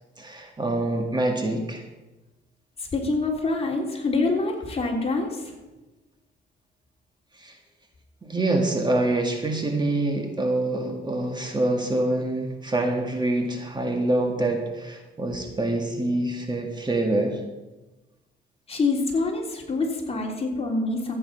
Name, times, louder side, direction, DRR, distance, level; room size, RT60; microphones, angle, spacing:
voice 1, 0.2-1.8 7.4-7.6 8.2-17.4, right 2 dB, 20° right, 3 dB, 1.9 m, -25 dB
voice 2, 2.9-5.4 18.7-21.2, left 3 dB, 30° left, 0 dB, 3.3 m, -25 dB
14.5 x 8.9 x 5.8 m, 1.1 s
cardioid pair, 90°, 20 cm